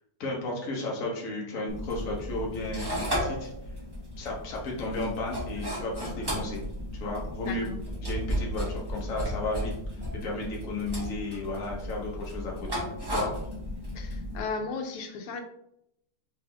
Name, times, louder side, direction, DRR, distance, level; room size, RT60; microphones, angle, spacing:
voice 1, 0.2-3.5 4.2-6.6 6.9-7.7 8.0-9.7 10.2-12.8 13.1-13.3, left 2 dB, 45° left, -2 dB, 1.3 m, -33 dB
sound 1, 1.7-14.4, equal, 30° right, 0.4 m, -34 dB
voice 2, 7.4-7.8 13.9-15.4, left 4 dB, 85° left, 5 dB, 1.6 m, -35 dB
4.1 x 3.4 x 3.5 m, 0.77 s
omnidirectional pair, 2.4 m